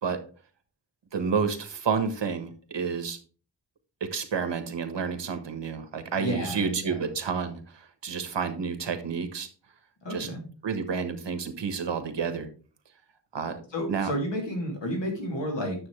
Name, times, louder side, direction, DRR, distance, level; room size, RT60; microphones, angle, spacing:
voice 1, 1.1-3.2 4.0-9.5 10.1-10.3 10.6-12.5 13.3-13.6 13.9-14.1, right 5 dB, 85° right, 8 dB, 1.4 m, -30 dB
voice 2, 6.2-7.0 10.0-10.4 13.7-15.9, equal, 85° left, 1 dB, 3.0 m, -31 dB
9.5 x 7.2 x 3.3 m, 0.39 s
wide cardioid pair, 90°, 42 cm